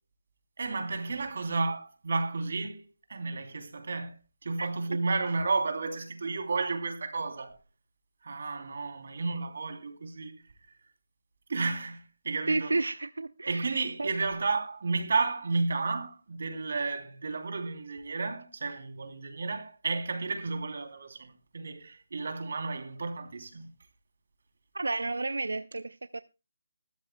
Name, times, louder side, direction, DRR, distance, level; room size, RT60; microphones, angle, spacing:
voice 1, 0.6-2.8 3.1-4.1 4.4-7.6 8.2-10.4 11.5-12.8 13.5-23.7, right 3 dB, 55° right, 3.2 m, -32 dB
voice 2, 12.5-14.1 24.7-26.2, right 3 dB, 90° right, 0.6 m, -32 dB
21.5 x 13.5 x 2.3 m
figure-of-eight pair, 170°, 0 cm